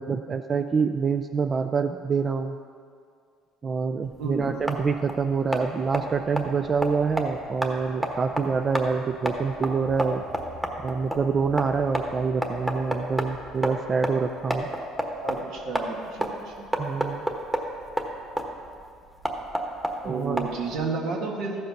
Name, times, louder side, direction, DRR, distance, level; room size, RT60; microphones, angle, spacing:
voice 1, 0.0-2.6 3.6-10.2 10.8-14.7 16.8-17.3 20.0-20.5, right 5 dB, 30° right, 8 dB, 0.4 m, -26 dB
sound 1, 4.1-20.9, equal, 5° right, 1.2 m, -32 dB
voice 2, 15.2-16.7 20.0-21.6, right 4 dB, 75° right, 0 dB, 1.9 m, -31 dB
14.0 x 5.5 x 5.8 m, 2.2 s
cardioid pair, 105°, 0 cm